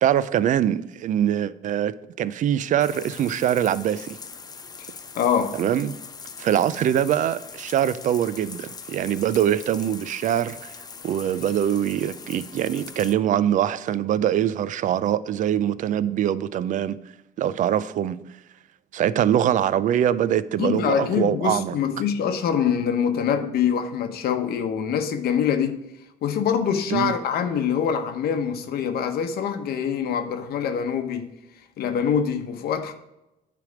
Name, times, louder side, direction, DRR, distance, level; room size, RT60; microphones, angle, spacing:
voice 1, 0.0-4.2 5.6-6.0 6.4-10.7 11.0-17.0 17.4-18.3 18.9-21.7 26.9-27.1, right 10 dB, 50° right, 0.4 m, -23 dB
sound 1, 2.8-13.1, left 5 dB, 25° left, 0.4 m, -41 dB
voice 2, 5.1-5.6 20.6-25.9 26.2-31.3 31.8-32.9, left 7 dB, 65° left, 0.9 m, -24 dB
9.5 x 3.4 x 4.9 m
cardioid pair, 110°, 17 cm